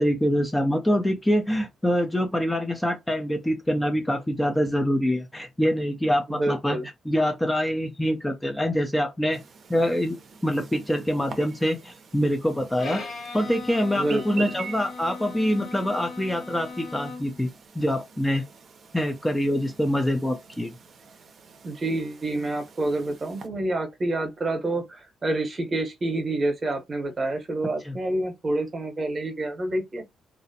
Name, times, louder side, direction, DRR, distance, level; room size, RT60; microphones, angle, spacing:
voice 1, 0.0-6.8 7.0-9.4 9.7-10.1 10.4-13.0 13.3-17.5 17.8-18.4 18.9-20.7 27.8-27.9, equal, 10° left, 0.4 m, -25 dB
voice 2, 6.3-6.9 13.9-14.5 21.6-30.0, right 2 dB, 35° right, 0.9 m, -28 dB
Chirp tweet, 9.3-23.5, right 5 dB, 50° right, 0.5 m, -46 dB
Bowed string instrument, 12.8-17.5, left 4 dB, 50° left, 1.1 m, -39 dB
2.4 x 2.0 x 2.7 m
cardioid pair, 90°, 0 cm